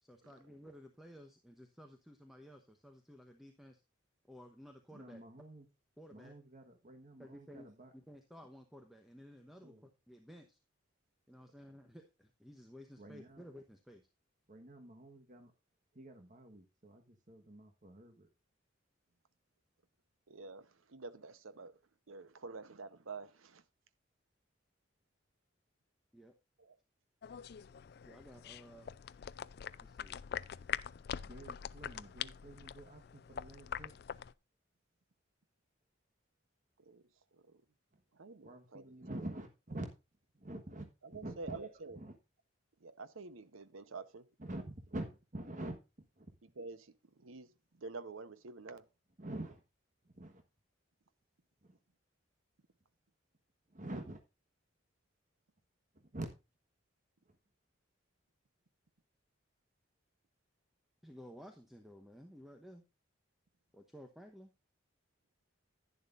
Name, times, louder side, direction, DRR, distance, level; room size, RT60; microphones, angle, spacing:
voice 1, 0.0-3.8 4.3-5.2 6.0-6.3 7.2-7.7 7.9-10.6 11.3-14.1 26.1-26.3 28.1-28.9 29.8-30.1 61.0-62.8 63.7-64.5, equal, ahead, 1.0 m, -55 dB
voice 2, 4.9-5.7 6.1-7.9 9.6-9.9 13.0-13.4 14.5-15.5 15.9-18.3 31.2-34.0 37.9-38.0 38.4-39.9 40.3-42.1 44.4-45.8 46.2-46.3 49.2-49.6 50.0-50.4 51.6-51.8 53.7-54.2 55.9-56.3 57.2-57.4, right 1 dB, 40° right, 1.3 m, -47 dB
voice 3, 20.3-21.8 22.1-23.6 26.6-26.8 36.8-37.0 37.3-37.6 38.1-38.9 41.0-42.0 42.8-44.3 46.6-48.9, right 4 dB, 90° right, 0.9 m, -48 dB
sound 1, 27.2-34.3, left 8 dB, 55° left, 0.4 m, -44 dB
11.0 x 10.5 x 2.5 m
head